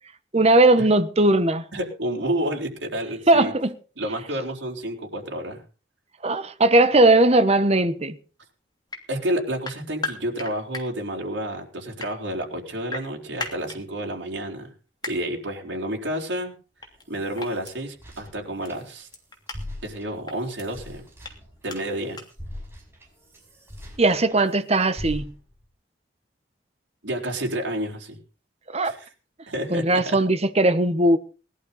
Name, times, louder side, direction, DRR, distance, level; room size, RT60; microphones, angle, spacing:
voice 1, 0.3-1.6 3.3-3.7 6.2-8.1 24.0-25.2 28.7-28.9 29.7-31.2, right 2 dB, 35° right, 1.2 m, -18 dB
voice 2, 1.7-3.5 4.0-5.6 9.1-14.7 15.1-16.5 17.1-19.1 19.8-21.1 21.6-22.2 27.0-28.2 28.8-29.1 29.5-30.2, right 1 dB, 80° right, 4.5 m, -30 dB
sound 1, 8.9-9.0 9.6-10.8 11.8-12.1 12.9-13.8 15.0-15.1 16.8-17.0 17.3-17.7 18.6-18.7 19.1-19.6 20.2-20.6 21.2-21.3 21.7-21.8 22.1-22.3, left 3 dB, 25° left, 2.9 m, -34 dB
sound 2, 16.8-19.2 19.5-24.5 25.0-25.6, left 1 dB, 15° right, 5.7 m, -41 dB
20.0 x 12.0 x 4.1 m
head